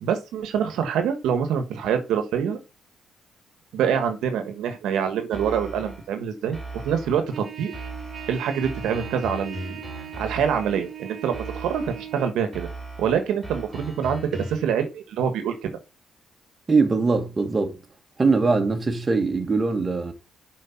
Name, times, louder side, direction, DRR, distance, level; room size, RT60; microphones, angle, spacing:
voice 1, 0.0-2.6 3.7-7.7 8.3-12.7 13.0-15.7, right 7 dB, 85° right, 1.4 m, -25 dB
sound 1, 5.3-6.1 6.5-7.3 7.7-10.9 11.3-12.1 12.5-14.7, right 1 dB, 5° right, 3.7 m, -38 dB
Trumpet, 7.3-12.3, right 10 dB, 50° right, 1.3 m, -39 dB
voice 2, 16.7-17.8 18.2-20.1, right 4 dB, 30° right, 1.9 m, -21 dB
7.5 x 5.2 x 5.8 m
cardioid pair, 90°, 0 cm